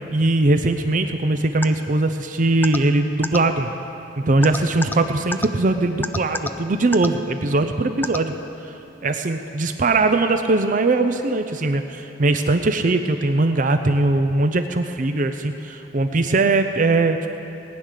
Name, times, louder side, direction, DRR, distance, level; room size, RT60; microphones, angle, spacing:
voice 1, 0.1-3.7 4.2-8.4 8.6-8.7 9.0-17.3, right 2 dB, 45° right, 8 dB, 0.6 m, -20 dB
sound 1, 1.6-1.7 2.6-2.8 3.2-3.4 4.4-5.0 5.3-5.5 6.0-6.5 6.9-7.1 8.0-8.2, left 2 dB, 10° left, 0.4 m, -25 dB
19.0 x 9.6 x 6.6 m, 2.9 s
head